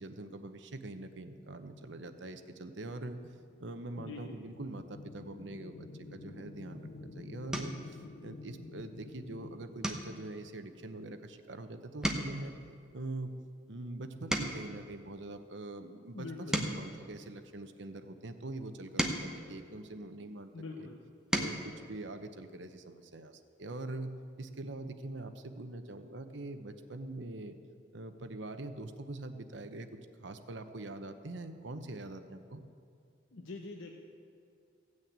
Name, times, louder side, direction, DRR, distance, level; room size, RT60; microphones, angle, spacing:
voice 1, 0.0-3.2 3.6-5.9 6.1-7.8 8.2-12.5 12.9-13.3 13.7-20.5 20.8-20.9 21.3-24.1 24.4-27.6 27.9-29.9 30.2-32.6, right 2 dB, 70° right, 8 dB, 0.9 m, -43 dB
sound 1, 3.5-11.1, left 3 dB, 55° left, 0.5 m, -50 dB
voice 2, 4.0-4.4 16.1-16.6 20.5-21.0 33.3-33.9, left 3 dB, 85° left, 2 dB, 0.9 m, -44 dB
sound 2, 6.6-6.9 7.5-7.9 8.4-8.8 9.1-9.3 9.8-11.6 11.9-14.8 15.4-17.9 18.6-20.4 21.0-21.7 23.1-23.2 23.5-23.7, equal, 5° right, 0.9 m, -38 dB
15.5 x 6.4 x 8.8 m, 2.4 s
head